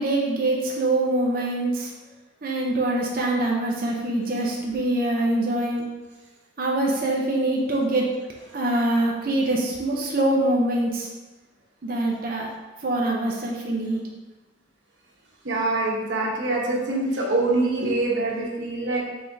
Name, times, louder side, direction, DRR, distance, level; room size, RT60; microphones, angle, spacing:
voice 1, 0.0-1.9 2.4-5.8 6.6-8.3 8.5-11.1 11.8-12.5 12.8-14.1, right 1 dB, 50° right, -2 dB, 0.6 m, -24 dB
voice 2, 15.4-19.0, right 2 dB, 85° right, -2 dB, 1.0 m, -24 dB
5.6 x 3.3 x 2.7 m, 1.2 s
head